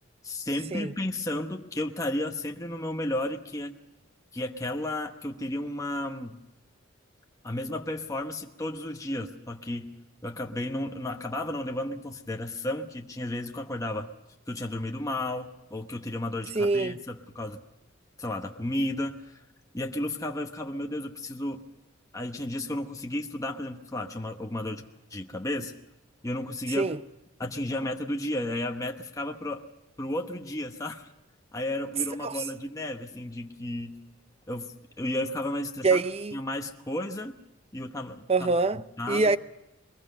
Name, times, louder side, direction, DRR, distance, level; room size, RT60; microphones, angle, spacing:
voice 1, 0.2-3.8 4.3-6.4 7.4-9.9 10.2-14.1 14.5-17.6 18.2-19.4 19.7-21.6 22.1-25.7 26.2-26.9 27.4-29.6 30.0-31.1 31.5-34.0 34.5-36.0 36.3-37.4 37.7-39.3, left 1 dB, 15° left, 1.0 m, -33 dB
voice 2, 16.5-17.0 26.8-27.0 32.2-32.4 35.8-36.4 38.3-38.8 39.1-39.4, right 3 dB, 30° right, 0.7 m, -24 dB
22.5 x 21.5 x 6.5 m
head